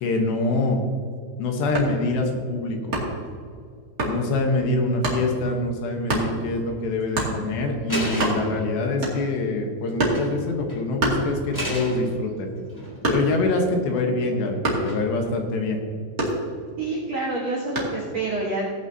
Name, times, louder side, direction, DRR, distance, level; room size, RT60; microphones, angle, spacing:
voice 1, 0.0-0.8 1.4-2.9 4.1-12.5 13.1-15.8, left 2 dB, 70° left, 3 dB, 3.0 m, -25 dB
sound 1, 1.6-2.0 2.9-3.3 4.0-4.2 5.0-5.3 6.1-6.3 7.1-7.4 7.8-7.9 8.1-8.6 9.0-9.4 10.0-10.3 11.0-11.7 12.1-13.5 14.6-15.0 16.2-16.8 17.8-18.0, right 1 dB, 65° right, 0.9 m, -26 dB
sound 2, 7.0-7.3 7.9-8.6 9.9-10.4 10.7-10.8 11.5-12.0 12.5-13.2 14.8-15.3, equal, 5° left, 1.9 m, -32 dB
voice 2, 16.8-18.7, right 2 dB, 90° right, -4 dB, 1.4 m, -27 dB
17.5 x 9.0 x 2.8 m, 2.2 s
omnidirectional pair, 5.5 m